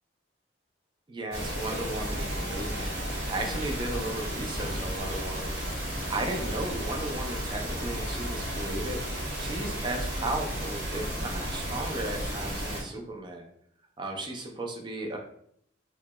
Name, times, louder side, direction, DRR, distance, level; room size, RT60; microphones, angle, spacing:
voice 1, 1.1-5.8 6.1-9.0 9.4-13.5 14.0-15.2, right 2 dB, 25° right, 2 dB, 0.4 m, -35 dB
sound 1, 1.3-9.9, left 3 dB, 80° left, 0.4 m, -49 dB
sound 2, 1.3-12.8, equal, 55° right, 1.0 m, -33 dB
4.5 x 2.1 x 2.2 m, 0.69 s
head